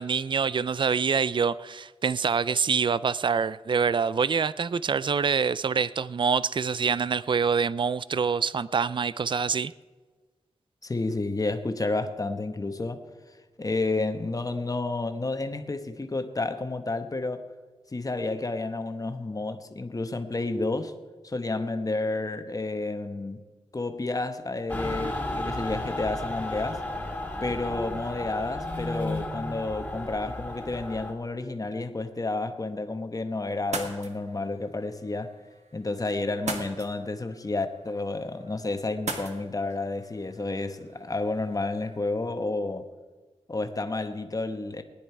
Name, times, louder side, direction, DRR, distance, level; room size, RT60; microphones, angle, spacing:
voice 1, 0.0-9.7, right 6 dB, 45° right, 18 dB, 0.4 m, -25 dB
voice 2, 10.8-13.0 13.6-17.5 17.9-20.9 21.2-23.4 23.7-26.8 27.4-35.4 35.7-42.9 43.5-44.8, left 2 dB, 30° left, 8 dB, 1.1 m, -30 dB
Mechanical fan, 24.7-31.1, left 1 dB, 10° left, 2.3 m, -33 dB
sound 1, 33.6-42.0, right 3 dB, 80° right, 1.6 m, -41 dB
19.0 x 10.0 x 4.6 m, 1.4 s
wide cardioid pair, 65°, 11 cm